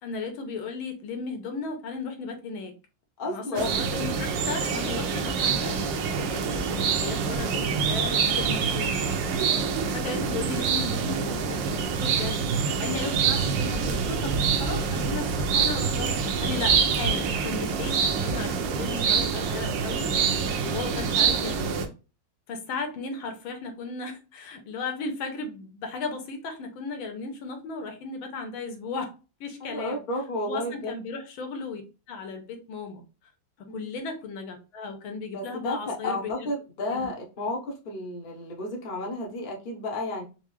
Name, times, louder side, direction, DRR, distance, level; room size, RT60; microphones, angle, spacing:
voice 1, 0.0-2.7 3.3-9.0 9.8-12.4 12.8-20.1 20.3-21.9 22.5-29.1 29.4-30.0 30.5-31.8 32.1-33.0 33.7-36.5 36.8-37.1, left 4 dB, 80° left, 1.6 m, -35 dB
voice 2, 3.2-3.7 9.4-9.9 20.5-20.7 29.6-30.9 33.7-33.9 35.3-40.2, left 2 dB, 40° left, 0.7 m, -32 dB
sound 1, 3.6-21.9, right 6 dB, 75° right, 1.2 m, -26 dB
4.5 x 2.0 x 3.0 m
omnidirectional pair, 2.2 m